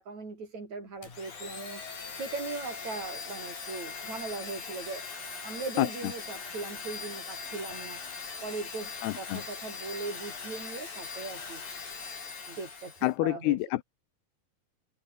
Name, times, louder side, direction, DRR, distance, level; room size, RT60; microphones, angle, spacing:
voice 1, 0.0-1.8 2.1-5.1 5.4-8.0 8.4-8.9 9.2-11.6 12.5-13.6, right 3 dB, 45° right, 7.9 m, -39 dB
Domestic sounds home sounds, 1.0-13.1, left 5 dB, 60° left, 7.6 m, -41 dB
voice 2, 9.0-9.4 13.0-13.8, left 17 dB, 80° left, 2.9 m, -27 dB
omnidirectional pair, 4.5 m